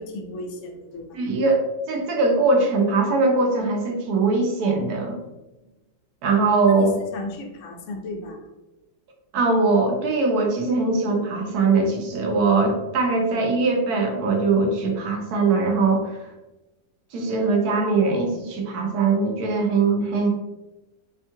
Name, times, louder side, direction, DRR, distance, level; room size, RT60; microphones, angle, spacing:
voice 1, 0.0-1.2 6.7-8.4, left 2 dB, 80° left, 2 dB, 0.6 m, -35 dB
voice 2, 1.1-5.2 6.2-6.9 9.3-16.2 17.1-20.3, right 3 dB, 70° right, 2 dB, 1.0 m, -21 dB
4.4 x 2.2 x 2.8 m, 1.0 s
omnidirectional pair, 2.1 m